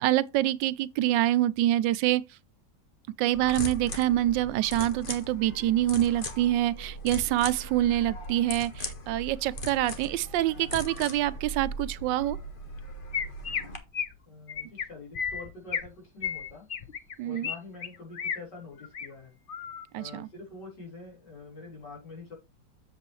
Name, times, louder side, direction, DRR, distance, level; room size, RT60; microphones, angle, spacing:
voice 1, 0.0-2.2 3.2-12.4 17.2-17.5 19.9-20.3, right 14 dB, 85° right, 1.3 m, -26 dB
sound 1, 3.3-13.8, equal, 35° left, 1.2 m, -39 dB
Chirp tweet, 12.7-12.8 13.1-13.6 13.9-14.2 14.5-14.8 15.1-15.9 16.2-17.5 17.8-18.4 18.8-19.1 19.5-19.8, left 7 dB, 55° left, 0.6 m, -33 dB
voice 2, 14.3-16.7 17.2-19.4 19.9-22.3, left 3 dB, 70° left, 4.9 m, -45 dB
7.8 x 7.5 x 3.1 m
omnidirectional pair, 1.9 m